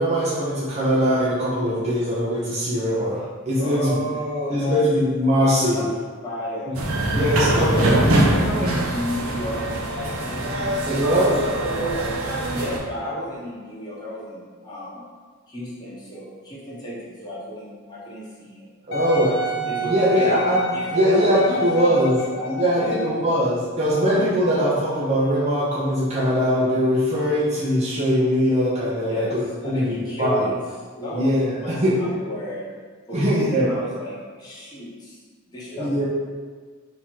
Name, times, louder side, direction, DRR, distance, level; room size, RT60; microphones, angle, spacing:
voice 1, 0.0-3.9 4.5-5.9 7.1-8.2 8.6-8.7 10.9-11.4 18.9-19.3 19.8-20.6 20.9-22.2 22.5-30.5 31.1-32.0 33.1-33.7 35.8-36.0, equal, 30° right, -8 dB, 0.7 m, -21 dB
voice 2, 3.6-4.8 5.6-5.9 6.2-6.7 7.1-11.0 11.6-12.1 12.4-15.0 15.5-18.6 19.2-19.4 19.6-20.3 20.7-22.9 29.0-29.4 29.6-30.6 30.9-31.3 31.6-32.7 33.1-35.2 35.5-36.0, equal, 20° left, -8 dB, 0.9 m, -33 dB
sound 1, 6.7-12.8, right 1 dB, 75° right, 0.7 m, -23 dB
Wind instrument woodwind instrument, 18.9-23.2 23.9-24.0, left 1 dB, 50° left, 0.8 m, -28 dB
3.7 x 2.9 x 4.5 m, 1.5 s
head